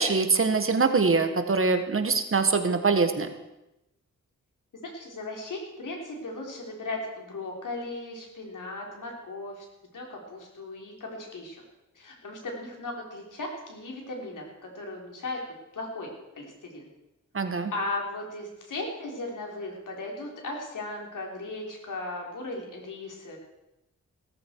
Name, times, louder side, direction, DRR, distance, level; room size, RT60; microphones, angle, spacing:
voice 1, 0.0-3.3 17.3-17.7, right 4 dB, 45° right, 7 dB, 1.5 m, -23 dB
voice 2, 4.7-9.6 9.9-11.6 11.9-15.4 15.7-16.1 16.4-16.9 17.7-23.4, left 2 dB, 80° left, 0 dB, 4.2 m, -37 dB
17.0 x 14.0 x 4.7 m, 0.92 s
wide cardioid pair, 100°, 31 cm